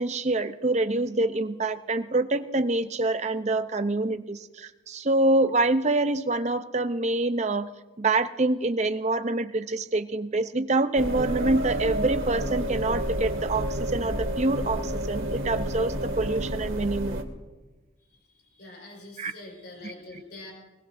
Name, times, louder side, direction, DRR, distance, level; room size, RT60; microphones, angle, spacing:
voice 1, 0.0-7.7 8.0-17.2 19.2-19.3 19.8-19.9, right 2 dB, 35° right, 9 dB, 0.6 m, -26 dB
sound 1, 11.0-17.2, right 1 dB, 80° right, 2.1 m, -30 dB
voice 2, 18.1-20.5, left 2 dB, 55° left, -1 dB, 5.0 m, -45 dB
22.0 x 21.5 x 2.6 m, 1.2 s
head